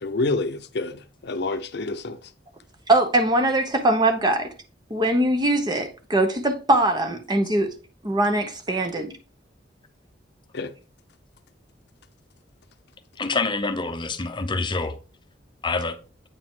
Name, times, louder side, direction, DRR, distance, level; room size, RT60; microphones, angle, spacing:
voice 1, 0.0-2.3 10.5-10.7, left 3 dB, 65° left, 0.7 m, -28 dB
voice 2, 2.9-4.5 4.9-7.7 8.0-9.1, right 1 dB, 25° right, 0.9 m, -22 dB
voice 3, 13.2-15.0 15.6-16.0, left 3 dB, 25° left, 0.7 m, -26 dB
8.6 x 4.8 x 3.7 m
head